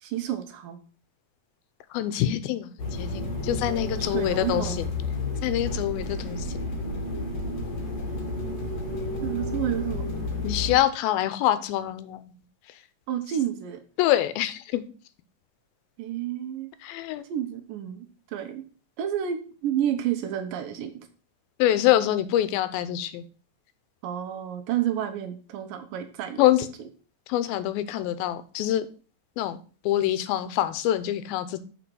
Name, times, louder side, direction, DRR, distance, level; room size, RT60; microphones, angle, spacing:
voice 1, 0.0-0.8 4.0-4.8 9.2-10.0 13.1-13.8 16.0-16.7 17.3-18.6 19.0-20.9 24.0-26.4, right 10 dB, 75° right, 8 dB, 2.3 m, -30 dB
voice 2, 1.9-4.9 5.4-6.6 10.4-12.2 14.0-14.8 16.8-17.2 21.6-23.2 26.4-26.7 27.3-28.9 29.4-29.6 29.8-31.6, left 13 dB, 85° left, 14 dB, 2.5 m, -25 dB
sound 1, 2.8-10.8, left 2 dB, 50° left, 1.5 m, -31 dB
7.0 x 4.9 x 6.1 m, 0.39 s
omnidirectional pair, 4.2 m